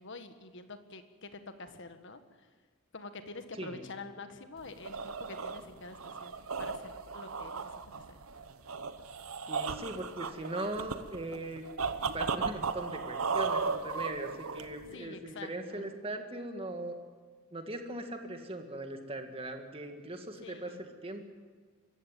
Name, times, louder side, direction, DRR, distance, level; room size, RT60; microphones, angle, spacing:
voice 1, 0.0-2.2 2.9-8.2 14.9-16.0 20.4-20.9, left 3 dB, 60° left, 8 dB, 1.7 m, -47 dB
sound 1, 4.6-14.9, right 5 dB, 80° right, 1.1 m, -36 dB
voice 2, 9.5-11.7 12.1-17.0 17.5-21.3, right 1 dB, 25° right, 5 dB, 2.2 m, -39 dB
24.5 x 15.0 x 9.3 m, 1.5 s
head